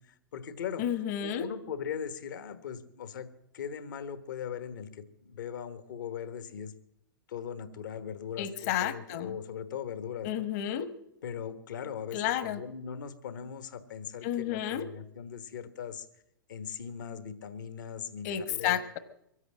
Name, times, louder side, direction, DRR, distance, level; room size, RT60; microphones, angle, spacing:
voice 1, 0.1-0.9 1.2-6.7 7.3-10.5 11.2-16.1 16.5-18.8, left 8 dB, 65° left, 10 dB, 1.4 m, -39 dB
voice 2, 0.8-1.5 8.4-9.4 10.2-10.9 12.1-12.6 14.2-14.9 18.2-19.0, left 10 dB, 50° left, 11 dB, 1.3 m, -31 dB
23.5 x 8.2 x 7.6 m, 0.81 s
figure-of-eight pair, 100°, 11 cm